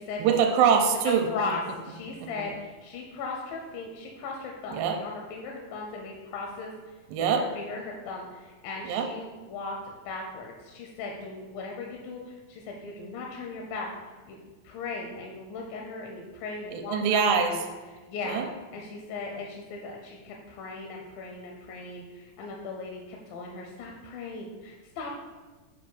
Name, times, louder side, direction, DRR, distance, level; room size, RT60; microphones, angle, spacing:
voice 1, 0.2-1.5 2.2-2.3 4.7-5.0 7.1-7.5 8.8-9.1 16.7-17.6 18.2-18.5, right 6 dB, 80° right, 4 dB, 2.2 m, -24 dB
voice 2, 1.3-6.9 7.3-13.9 14.3-14.4 14.6-17.6 18.1-18.4 18.7-25.1, left 3 dB, 85° left, 0 dB, 2.3 m, -38 dB
7.0 x 2.6 x 5.4 m, 1.3 s
omnidirectional pair, 4.1 m